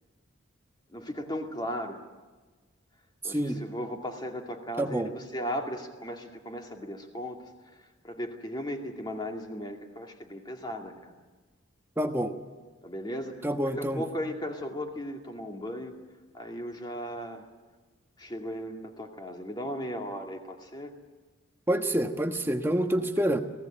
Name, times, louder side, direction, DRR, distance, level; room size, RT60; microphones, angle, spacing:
voice 1, 0.9-2.0 3.2-7.8 8.0-11.2 12.8-13.5 13.8-15.9 16.3-17.5 18.2-20.9 22.9-23.1, equal, 20° left, 3 dB, 2.3 m, -36 dB
voice 2, 3.2-3.6 4.8-5.1 12.0-12.4 13.4-14.0 21.7-23.4, right 1 dB, 10° right, 5 dB, 1.3 m, -27 dB
26.5 x 17.0 x 8.7 m, 1.3 s
head